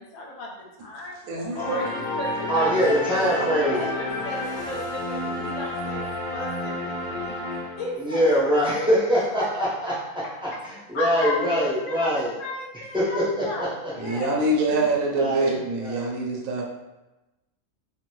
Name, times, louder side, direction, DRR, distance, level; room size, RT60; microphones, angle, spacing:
voice 1, 0.0-1.2 1.5-3.2 3.7-6.0 6.3-7.3 7.8-8.6 10.9-14.3, left 2 dB, 75° left, -2 dB, 1.0 m, -34 dB
voice 2, 1.3-1.8 3.4-3.8 14.0-16.6, right 2 dB, 75° right, -1 dB, 1.0 m, -25 dB
sound 1, 1.6-8.1, left 1 dB, 45° left, 0.8 m, -31 dB
voice 3, 2.5-3.9 8.0-12.3 12.9-13.9 15.1-15.5 15.8-16.1, equal, 5° right, -9 dB, 0.6 m, -24 dB
2.6 x 2.6 x 3.0 m, 1.0 s
omnidirectional pair, 1.4 m